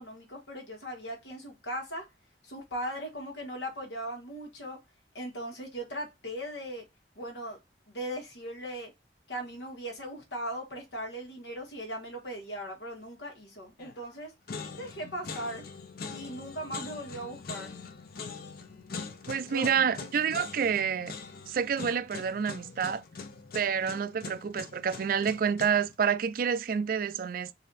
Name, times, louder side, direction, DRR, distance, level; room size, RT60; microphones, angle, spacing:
voice 1, 0.0-2.0 2.4-4.8 5.1-6.8 7.1-7.6 7.9-8.9 9.3-14.3 14.8-15.6 16.1-17.7 19.5-19.7, equal, 85° left, 1.5 m, -38 dB
sound 1, 13.8-14.1 14.5-25.9, left 5 dB, 55° left, 0.6 m, -43 dB
voice 2, 19.3-21.1 21.5-23.0 23.5-27.5, right 7 dB, 55° right, 0.4 m, -28 dB
4.1 x 2.6 x 4.0 m
head